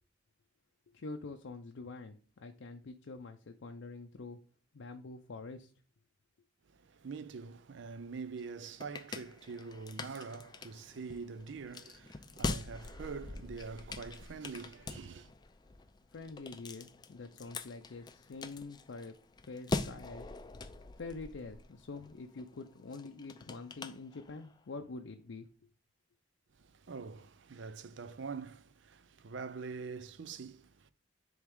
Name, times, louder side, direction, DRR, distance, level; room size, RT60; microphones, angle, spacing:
voice 1, 0.9-4.4 4.7-5.7 16.1-19.2 19.5-20.3 21.0-25.5, left 3 dB, 80° left, 0.5 m, -46 dB
voice 2, 6.7-15.3 26.5-30.9, right 5 dB, 70° right, 0.5 m, -45 dB
sound 1, 8.4-24.6, left 3 dB, 20° left, 0.4 m, -44 dB
9.9 x 3.6 x 3.6 m
head